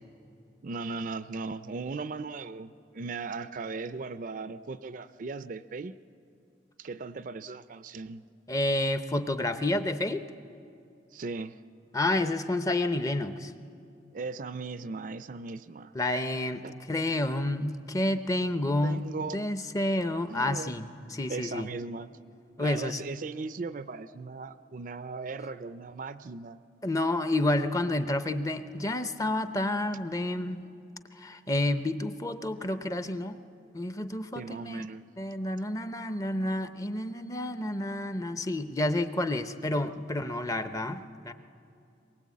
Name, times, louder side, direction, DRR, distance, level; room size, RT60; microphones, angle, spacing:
voice 1, 0.6-5.9 6.8-8.2 11.1-11.6 14.1-15.9 16.6-16.8 18.8-19.5 20.3-20.7 21.3-22.1 22.6-26.6 32.6-32.7 34.3-35.1, right 4 dB, 45° right, 13 dB, 0.4 m, -38 dB
voice 2, 8.5-10.2 11.9-13.5 15.9-19.0 19.3-21.7 22.6-23.0 26.8-30.6 31.1-33.4 33.7-34.9 35.2-41.3, left 1 dB, 20° left, 10 dB, 0.6 m, -30 dB
22.5 x 18.5 x 8.4 m, 2.6 s
head